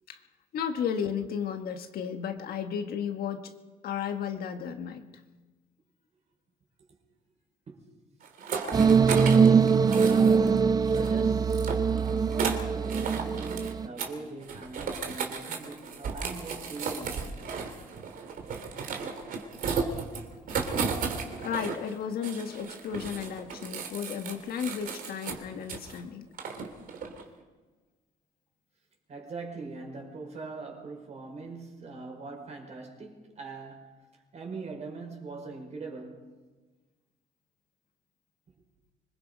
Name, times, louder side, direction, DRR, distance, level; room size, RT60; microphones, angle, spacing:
voice 1, 0.5-3.5 3.8-5.0 21.4-26.2, left 7 dB, 65° left, 1.5 m, -33 dB
sound 1, 8.2-10.6 10.9-13.7 14.0-14.1 14.4-21.9 22.2-26.0 26.4-27.3, right 5 dB, 55° right, 3.0 m, -35 dB
sound 2, 8.7-13.9, right 6 dB, 25° right, 0.5 m, -22 dB
voice 2, 9.3-17.2 29.1-33.9 34.3-36.3, right 3 dB, 40° right, 5.1 m, -41 dB
25.0 x 21.5 x 5.3 m
cardioid pair, 110°, 17 cm